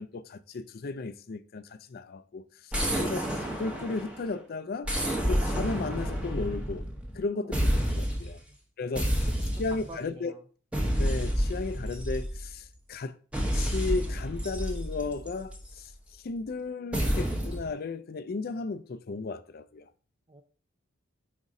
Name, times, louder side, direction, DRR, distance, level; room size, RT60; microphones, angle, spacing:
voice 1, 0.0-4.9 5.3-6.9 7.1-8.4 8.8-9.3 9.6-10.3 11.0-13.2 13.5-19.9, left 3 dB, 45° left, 0.4 m, -35 dB
sound 1, 2.7-4.3 4.8-7.2 7.5-8.4 8.9-10.0 10.7-12.6 13.3-15.7 16.9-17.7, equal, 5° right, 0.9 m, -29 dB
voice 2, 9.7-10.4 20.3-20.4, right 2 dB, 20° right, 0.5 m, -46 dB
5.1 x 4.1 x 4.8 m
head